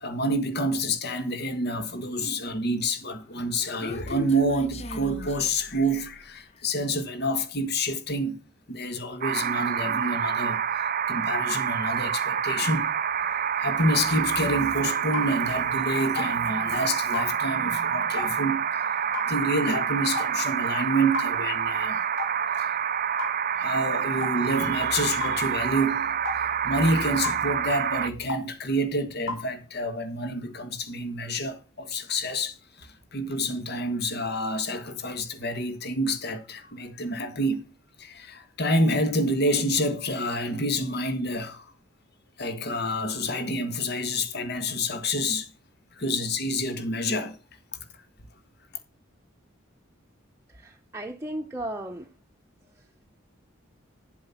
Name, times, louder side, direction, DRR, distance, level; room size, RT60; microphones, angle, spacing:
voice 1, 0.0-8.4 8.7-10.7 11.1-13.0 13.5-18.7 19.3-22.0 22.6-22.7 23.6-37.6 38.0-41.7 42.4-45.5 45.9-47.4, equal, 55° left, 1.6 m, -28 dB
Human voice, 3.2-6.2, left 1 dB, 30° left, 0.8 m, -38 dB
sound 1, 9.2-28.1, right 8 dB, 45° right, 0.5 m, -27 dB
sound 2, 15.1-15.3 16.1-16.3 17.1-17.3 18.2-18.3 19.1-19.3 20.1-20.3 21.1-21.3 22.2-22.4 23.2-23.4 24.2-24.4 25.2-25.4 26.2-26.4 27.2-27.4 28.3-28.5 29.3-29.5, left 4 dB, 75° left, 2.6 m, -33 dB
voice 2, 50.5-52.1 52.6-53.0, right 1 dB, 15° right, 0.9 m, -36 dB
9.9 x 7.7 x 5.8 m
head